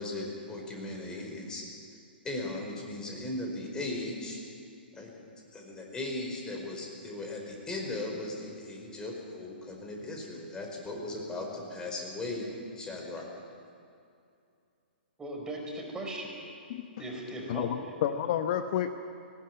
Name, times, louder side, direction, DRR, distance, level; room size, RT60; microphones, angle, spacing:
voice 1, 0.0-1.6 2.2-4.4 4.9-5.1 5.5-12.5 12.7-13.2, left 2 dB, 15° left, 0 dB, 4.9 m, -37 dB
voice 2, 15.2-16.3 17.0-17.9, right 1 dB, 10° right, 0 dB, 4.9 m, -38 dB
voice 3, 17.5-18.9, left 10 dB, 50° left, 8 dB, 1.0 m, -30 dB
19.0 x 18.5 x 9.7 m, 2.5 s
hypercardioid pair, 125°, 6 cm